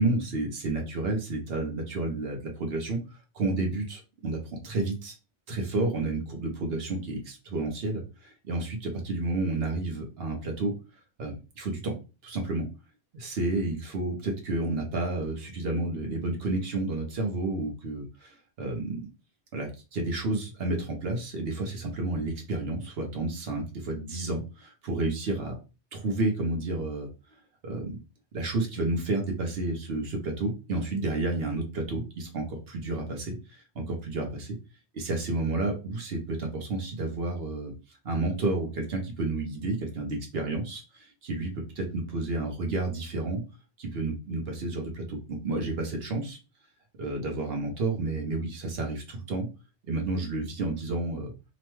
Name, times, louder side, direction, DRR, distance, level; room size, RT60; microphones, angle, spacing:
voice 1, 0.0-3.0 3.3-5.1 5.5-10.7 11.2-11.9 12.2-12.7 13.1-19.0 19.5-25.5 25.9-27.1 27.6-28.0 28.3-34.6 34.9-37.7 38.0-43.4 43.8-46.4 47.0-49.5 49.9-51.3, right 2 dB, 60° right, 2 dB, 1.0 m, -31 dB
2.9 x 2.2 x 3.1 m, 0.30 s
omnidirectional pair, 1.2 m